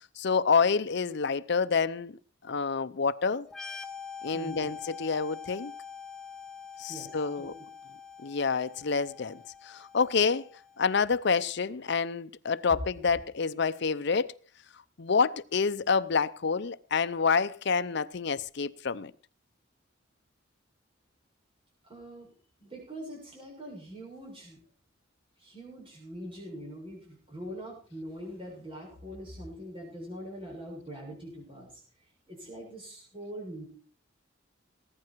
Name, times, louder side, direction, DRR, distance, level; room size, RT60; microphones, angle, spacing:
voice 1, 0.2-2.2 2.4-3.5 4.2-5.7 6.8-7.5 8.2-10.5 10.8-14.3 15.0-19.1, left 5 dB, 60° left, 0.6 m, -28 dB
sound 1, 3.5-11.0, left 6 dB, ahead, 2.0 m, -45 dB
voice 2, 4.3-4.7 6.9-7.5 21.9-22.3 22.6-24.6 25.4-31.8 32.3-33.7, equal, 30° right, 6.8 m, -43 dB
19.5 x 9.7 x 4.6 m
head